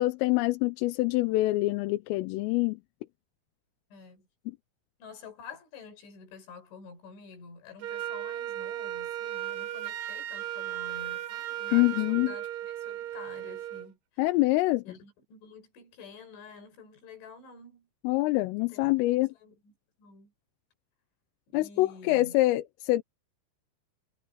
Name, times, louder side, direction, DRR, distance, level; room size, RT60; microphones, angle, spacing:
voice 1, 0.0-2.8 11.7-12.3 14.2-14.8 18.1-19.3 21.5-23.0, left 19 dB, 85° left, 3.5 m, -25 dB
voice 2, 3.9-4.3 5.0-14.3 14.9-17.9 18.6-18.9 19.2-19.7 20.0-20.3 21.5-22.3, left 5 dB, 65° left, 7.5 m, -49 dB
Wind instrument woodwind instrument, 7.8-13.9, right 12 dB, 70° right, 2.6 m, -36 dB
omnidirectional pair, 5.8 m